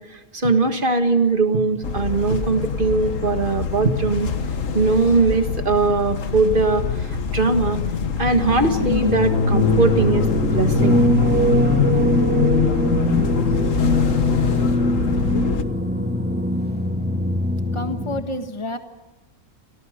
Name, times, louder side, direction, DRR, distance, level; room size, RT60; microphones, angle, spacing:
voice 1, 0.3-4.3 4.7-6.8 7.3-7.8 8.2-10.3 10.5-11.1, right 3 dB, 40° right, 7 dB, 1.9 m, -20 dB
sound 1, 1.8-15.6, left 7 dB, 65° left, 1.6 m, -23 dB
sound 2, 8.3-18.2, right 1 dB, 5° right, 2.2 m, -22 dB
voice 2, 17.7-18.8, left 1 dB, 20° left, 7 dB, 1.6 m, -28 dB
29.5 x 23.5 x 5.2 m, 1.1 s
omnidirectional pair, 1.5 m